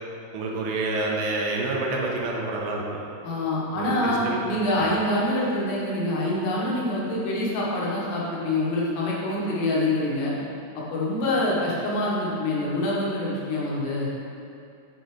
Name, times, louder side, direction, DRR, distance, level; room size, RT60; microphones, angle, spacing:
voice 1, 0.3-2.8 3.7-4.4 4.8-4.9, right 2 dB, 85° right, -1 dB, 3.1 m, -28 dB
voice 2, 3.2-10.3 10.9-14.1, left 1 dB, 75° left, -6 dB, 3.6 m, -25 dB
7.9 x 7.3 x 3.8 m, 2.6 s
omnidirectional pair, 5.0 m